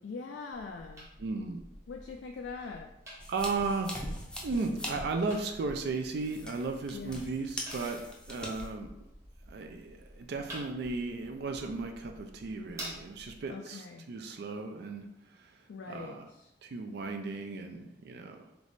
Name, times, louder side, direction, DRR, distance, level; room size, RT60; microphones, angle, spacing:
voice 1, 0.0-1.1 1.9-2.9 6.9-7.3 13.5-14.1 15.7-16.5, left 4 dB, 80° left, 3 dB, 0.3 m, -42 dB
sound 1, 0.5-13.5, equal, 20° right, 1.0 m, -50 dB
voice 2, 1.2-1.6 3.3-3.9 4.4-8.0 8.3-8.9 9.5-15.1 15.3-15.6 15.9-16.3 16.6-18.5, right 3 dB, 65° right, 5 dB, 0.4 m, -35 dB
sound 2, 3.2-8.7, left 1 dB, 5° left, 0.6 m, -42 dB
3.4 x 3.0 x 3.9 m, 0.89 s
head